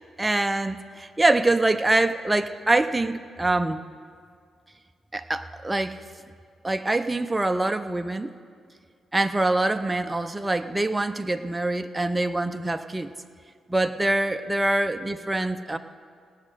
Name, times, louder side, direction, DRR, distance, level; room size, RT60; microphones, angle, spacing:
voice 1, 0.2-3.8 5.1-6.0 6.6-8.3 9.1-13.1 13.7-15.8, right 2 dB, 20° right, 8 dB, 0.7 m, -24 dB
17.5 x 6.4 x 9.0 m, 2.2 s
supercardioid pair, 50°, 0 cm